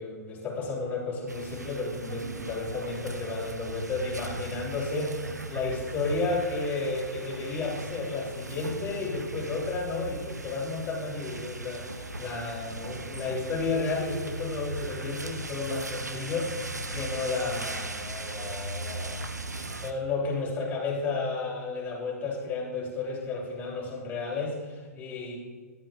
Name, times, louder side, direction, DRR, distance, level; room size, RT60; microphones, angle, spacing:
voice 1, 0.0-16.6 16.9-19.3 19.7-25.4, left 3 dB, 20° left, -3 dB, 3.7 m, -32 dB
sound 1, 1.3-19.9, right 2 dB, 85° right, 1.0 m, -38 dB
17.5 x 12.0 x 2.6 m, 1.5 s
figure-of-eight pair, 110°, 9 cm